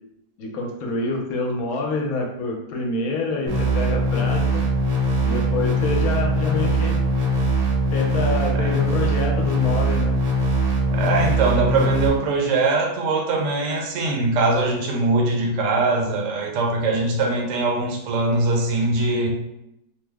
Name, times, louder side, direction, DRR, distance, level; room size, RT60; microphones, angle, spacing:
voice 1, 0.4-4.6 5.2-7.0 7.9-10.2, left 3 dB, 70° left, 1 dB, 1.1 m, -27 dB
sound 1, 3.5-12.1, right 1 dB, 85° right, 1.4 m, -21 dB
voice 2, 10.9-19.3, right 3 dB, 65° right, -1 dB, 0.9 m, -22 dB
3.1 x 2.0 x 3.4 m, 0.83 s
omnidirectional pair, 1.6 m